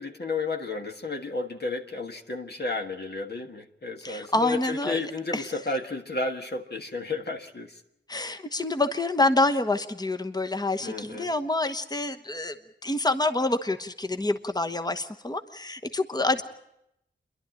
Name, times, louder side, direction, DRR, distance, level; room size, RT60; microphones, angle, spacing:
voice 1, 0.0-7.8 8.1-8.4 10.8-11.3, left 3 dB, 55° left, 3 dB, 1.6 m, -32 dB
voice 2, 4.0-5.0 5.3-5.4 8.1-12.5 12.8-16.4, left 2 dB, 20° left, 8 dB, 1.1 m, -27 dB
28.0 x 11.5 x 9.0 m, 0.82 s
wide cardioid pair, 55°, 20 cm